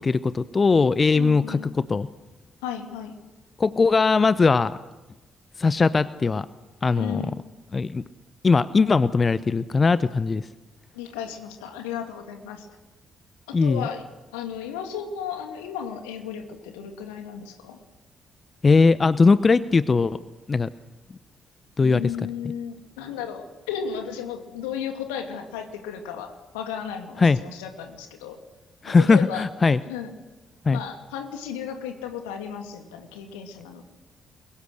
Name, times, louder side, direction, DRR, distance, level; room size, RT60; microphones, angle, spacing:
voice 1, 0.0-2.1 3.6-4.8 5.6-6.5 6.8-7.2 7.7-8.0 8.4-10.5 13.5-13.9 18.6-20.2 20.5-20.7 21.8-22.0 27.2-27.4 28.8-29.8 30.7-30.8, left 4 dB, 35° left, 16 dB, 0.7 m, -20 dB
voice 2, 1.1-1.7 2.6-3.2 7.0-7.4 10.9-12.7 13.5-14.0 14.3-17.8 21.8-28.4 28.9-29.5 29.9-30.1 30.7-33.9, left 8 dB, 75° left, 5 dB, 2.6 m, -34 dB
29.0 x 22.5 x 6.5 m, 1.1 s
figure-of-eight pair, 40°, 0 cm